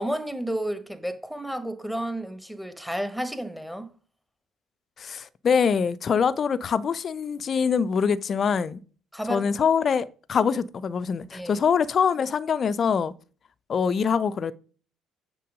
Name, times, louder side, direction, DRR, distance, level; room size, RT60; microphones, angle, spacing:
voice 1, 0.0-3.9 9.1-9.5 11.3-11.6, right 1 dB, ahead, 1.4 m, -31 dB
voice 2, 5.0-8.8 9.3-13.1 13.7-14.5, left 6 dB, 40° left, 0.6 m, -24 dB
9.3 x 4.5 x 5.1 m
figure-of-eight pair, 50°, 0 cm